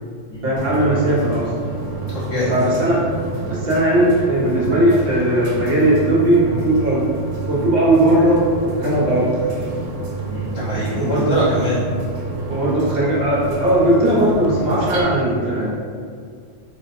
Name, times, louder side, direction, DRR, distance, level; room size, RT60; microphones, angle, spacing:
voice 1, 0.4-1.5 2.5-3.0 3.5-7.1 7.5-9.3 10.9-11.4 12.5-15.7, right 1 dB, 55° right, -6 dB, 1.0 m, -18 dB
sound 1, 0.6-15.0, right 3 dB, 85° right, 1.0 m, -28 dB
voice 2, 2.1-2.5 10.3-11.8, equal, 70° left, -9 dB, 1.6 m, -23 dB
3.9 x 2.2 x 4.0 m, 2.2 s
omnidirectional pair, 1.3 m